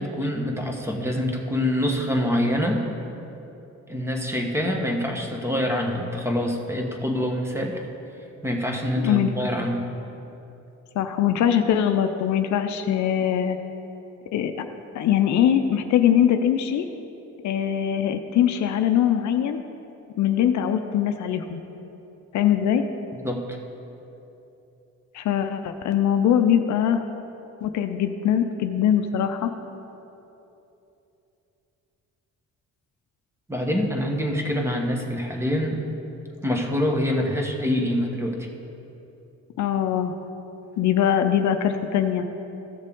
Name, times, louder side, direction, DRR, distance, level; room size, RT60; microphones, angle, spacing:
voice 1, 0.0-2.8 3.9-7.8 8.4-9.9 23.2-23.4 33.5-35.8 36.4-38.5, equal, 10° right, 1 dB, 1.2 m, -25 dB
voice 2, 9.0-9.3 11.0-13.6 14.3-14.7 14.9-16.9 17.4-19.6 20.2-21.6 22.3-22.8 25.1-27.0 27.6-29.5 39.6-40.1 40.8-42.2, left 9 dB, 70° left, 7 dB, 0.6 m, -22 dB
15.0 x 6.5 x 3.7 m, 3.0 s
cardioid pair, 90°, 30 cm